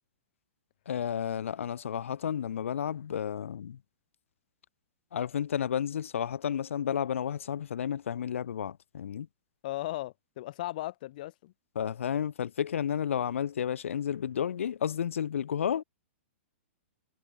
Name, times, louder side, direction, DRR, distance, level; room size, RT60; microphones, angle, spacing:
voice 1, 0.9-3.8 5.1-9.3 11.7-15.8, left 8 dB, 80° left, 2.7 m, -32 dB
voice 2, 9.6-11.5, left 16 dB, 40° left, 5.4 m, -37 dB
hypercardioid pair, 170°, 7 cm